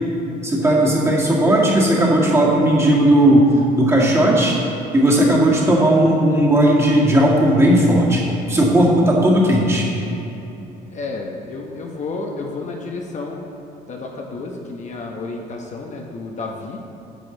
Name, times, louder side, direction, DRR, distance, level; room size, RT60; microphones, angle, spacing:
voice 1, 0.4-3.5 3.7-4.6 4.9-8.2 8.5-9.9, right 1 dB, 15° right, -4 dB, 1.9 m, -15 dB
voice 2, 5.0-5.5 10.9-13.4 13.9-16.8, left 3 dB, 45° left, 0 dB, 0.9 m, -31 dB
10.0 x 6.8 x 3.9 m, 3.0 s
cardioid pair, 110°, 17 cm